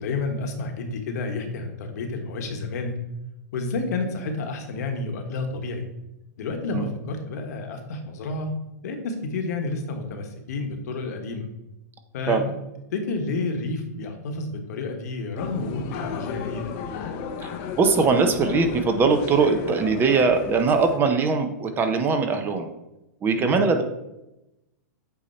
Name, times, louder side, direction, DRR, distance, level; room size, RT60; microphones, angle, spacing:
voice 1, 0.0-3.0 3.5-5.9 6.4-8.5 8.8-11.5 12.1-12.5 12.9-16.7 23.3-23.6, left 3 dB, 65° left, 4 dB, 1.2 m, -30 dB
sound 1, 15.4-21.0, left 6 dB, 45° left, 0.6 m, -34 dB
voice 2, 17.8-22.7 23.2-23.8, right 4 dB, 20° right, 6 dB, 0.6 m, -21 dB
8.0 x 2.8 x 4.3 m, 0.92 s
hypercardioid pair, 130°, 9 cm